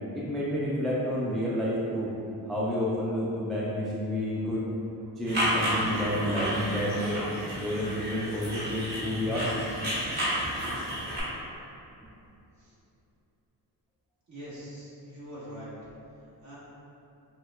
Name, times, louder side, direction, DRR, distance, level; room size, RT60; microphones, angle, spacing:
voice 1, 0.1-2.1 2.5-4.7 5.2-9.5, equal, ahead, -7 dB, 0.3 m, -30 dB
sound 1, 5.3-11.2, equal, 25° right, 1.4 m, -31 dB
voice 2, 14.3-15.7 16.4-16.6, equal, 45° right, -9 dB, 1.4 m, -43 dB
6.0 x 2.1 x 2.4 m, 2.9 s
cardioid pair, 110°, 40 cm